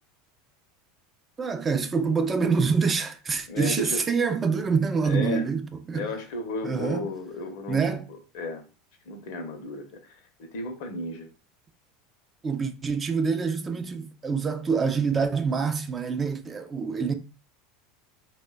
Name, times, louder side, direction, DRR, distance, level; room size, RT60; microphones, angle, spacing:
voice 1, 1.4-6.1 6.6-7.0 7.7-8.0 12.4-17.1, right 5 dB, 25° right, 0.3 m, -26 dB
voice 2, 3.5-4.0 5.0-5.5 5.9-8.0 8.3-8.6 9.1-11.3, left 2 dB, 60° left, 0.6 m, -34 dB
3.0 x 2.1 x 2.2 m
figure-of-eight pair, 75°, 0 cm